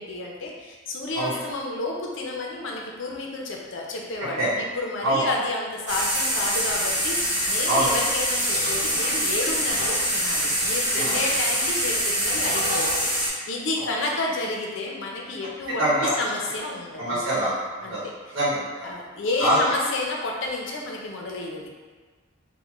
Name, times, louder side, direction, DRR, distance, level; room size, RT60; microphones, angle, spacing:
voice 1, 0.0-4.5 4.8-17.2 17.8-18.4 18.8-21.7, left 2 dB, 70° left, -1 dB, 0.5 m, -31 dB
sound 1, 5.9-13.3, equal, 40° right, 1.2 m, -24 dB
voice 2, 15.8-16.1 17.0-17.5 17.8-18.0 18.3-18.9 19.4-19.6, right 1 dB, 85° right, -9 dB, 0.9 m, -24 dB
3.5 x 2.1 x 3.0 m, 1.4 s
head